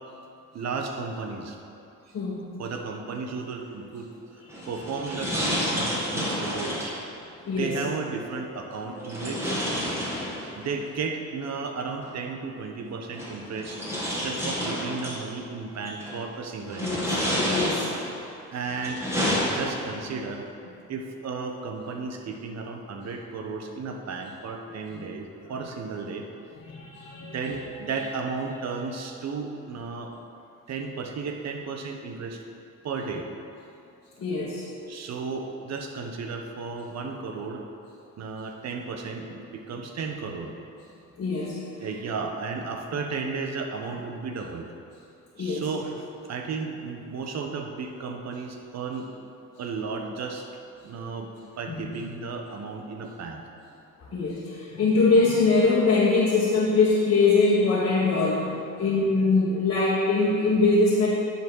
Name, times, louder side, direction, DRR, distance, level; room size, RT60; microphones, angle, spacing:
voice 1, 0.5-1.6 2.6-4.1 4.7-6.9 7.6-9.6 10.5-13.8 14.2-17.0 18.5-19.0 19.5-26.3 27.2-30.1 30.7-32.4 32.8-33.3 34.9-37.7 38.2-40.5 41.4-41.5 41.7-44.7 45.4-49.1 49.6-50.5 50.8-51.3 51.6-53.4, right 4 dB, 60° right, 4 dB, 1.1 m, -34 dB
sound 1, 4.5-7.0 9.0-10.7 12.0-12.1 13.1-15.2 15.8-16.2 16.7-18.1 18.6-20.1, equal, 10° right, 2.3 m, -29 dB
voice 2, 8.9-9.3 9.9-10.0 16.8-17.1 17.5-17.9 24.9-25.0 26.6-27.4 34.2-34.6 41.2-41.6 45.4-45.7 51.8-51.9 54.1-61.1, left 3 dB, 50° left, -7 dB, 1.4 m, -23 dB
10.5 x 4.1 x 6.3 m, 2.6 s
cardioid pair, 90°, 30 cm